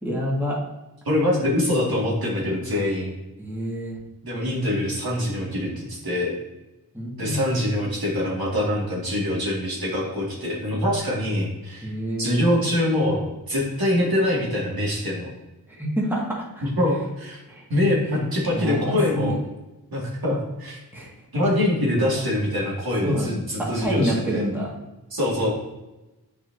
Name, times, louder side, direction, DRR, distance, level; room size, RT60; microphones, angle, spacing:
voice 1, 0.0-0.6 3.4-4.0 6.9-7.4 11.8-12.5 15.7-16.7 17.5-17.6 18.5-19.3 20.9-21.1 23.0-24.7, equal, 5° right, -5 dB, 1.8 m, -27 dB
voice 2, 1.0-3.1 4.2-6.3 7.2-11.9 12.2-15.3 16.6-17.4 17.7-19.4 19.9-20.8 21.3-24.5 25.1-25.5, left 1 dB, 65° right, -4 dB, 2.1 m, -24 dB
8.8 x 4.8 x 2.7 m, 1.0 s
wide cardioid pair, 100°, 39 cm